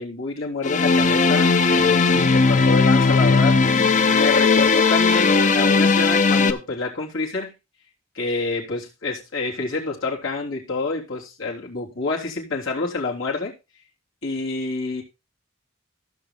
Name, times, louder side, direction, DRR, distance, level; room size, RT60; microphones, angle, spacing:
voice 1, 0.0-7.5 8.1-13.5 14.2-15.0, left 3 dB, 80° left, 3.5 m, -28 dB
sound 1, 0.6-6.5, left 4 dB, 40° left, 0.8 m, -17 dB
15.5 x 6.4 x 3.7 m
head